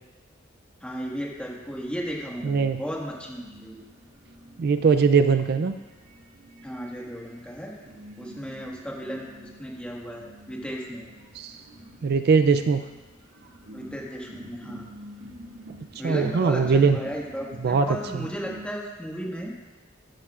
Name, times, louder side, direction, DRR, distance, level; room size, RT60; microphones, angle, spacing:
voice 1, 0.8-3.8 6.6-7.8 8.2-11.0 13.7-14.9 16.0-19.5, equal, 5° left, -2 dB, 1.7 m, -35 dB
sound 1, 1.3-18.7, equal, 80° right, 2.0 m, -48 dB
voice 2, 2.4-2.8 4.6-5.7 11.3-11.6 12.0-12.8 16.0-17.0 17.6-17.9 18.1-18.3, right 5 dB, 50° right, 9 dB, 0.4 m, -21 dB
14.0 x 11.5 x 2.4 m, 1.2 s
head